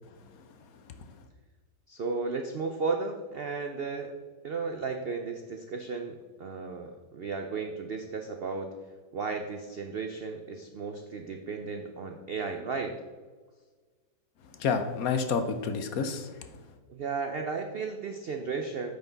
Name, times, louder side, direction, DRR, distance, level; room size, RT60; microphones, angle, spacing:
voice 1, 0.3-1.2 14.5-16.6, left 5 dB, 65° left, 8 dB, 1.1 m, -31 dB
voice 2, 1.9-4.1 4.4-8.7 9.1-12.9 16.9-18.9, right 4 dB, 75° right, 5 dB, 0.5 m, -34 dB
8.8 x 6.0 x 3.9 m, 1.4 s
omnidirectional pair, 1.8 m